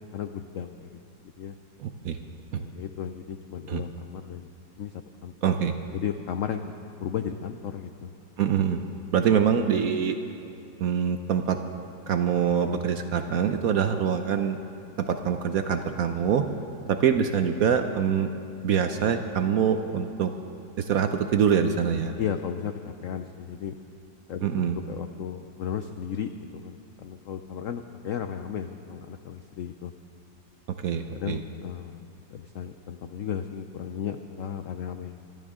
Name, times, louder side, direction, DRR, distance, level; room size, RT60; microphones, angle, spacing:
voice 1, 0.1-1.0 1.4-1.5 2.5-4.5 4.8-4.9 5.2-5.3 5.9-6.7 7.0-8.1 22.2-23.7 24.3-29.9 30.9-32.1 32.3-35.2, left 8 dB, 90° left, 7 dB, 0.7 m, -35 dB
voice 2, 1.8-2.2 2.5-2.6 3.7-3.8 5.4-5.7 8.4-8.8 9.1-10.2 10.8-11.6 12.1-14.6 15.0-16.4 16.9-18.3 18.6-20.3 20.8-22.1 24.4-24.8 30.8-31.4, right 7 dB, 65° right, 7 dB, 0.9 m, -24 dB
25.0 x 12.5 x 3.7 m, 2.8 s
omnidirectional pair, 2.0 m